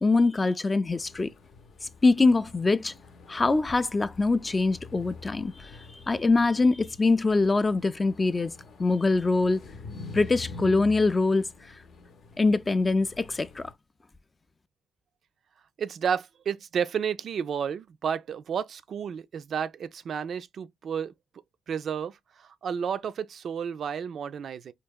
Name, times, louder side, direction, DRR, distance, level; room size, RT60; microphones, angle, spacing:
voice 1, 0.0-1.3 1.8-2.9 3.3-5.7 6.1-8.5 8.8-9.6 10.1-11.8 12.4-13.7, left 3 dB, 25° left, 0.3 m, -23 dB
sound 1, 0.9-13.7, left 3 dB, 65° left, 0.6 m, -46 dB
voice 2, 15.8-21.1 21.7-24.7, right 7 dB, 60° right, 0.3 m, -31 dB
4.5 x 2.8 x 2.3 m
cardioid pair, 90°, 0 cm